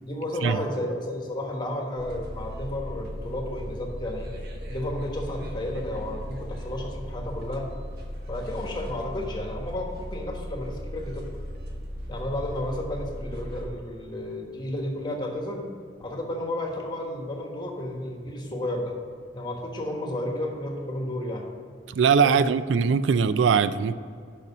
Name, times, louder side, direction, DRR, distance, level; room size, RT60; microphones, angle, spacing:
voice 1, 0.0-4.3 4.7-7.7 8.3-11.4 12.1-15.7 16.0-18.9 19.3-21.5 22.1-22.5, left 1 dB, 25° left, 1 dB, 1.3 m, -32 dB
sound 1, 2.0-13.7, equal, 60° right, 1.3 m, -37 dB
voice 2, 21.9-24.0, right 6 dB, 90° right, 13 dB, 0.4 m, -21 dB
6.6 x 5.8 x 7.2 m, 2.2 s
head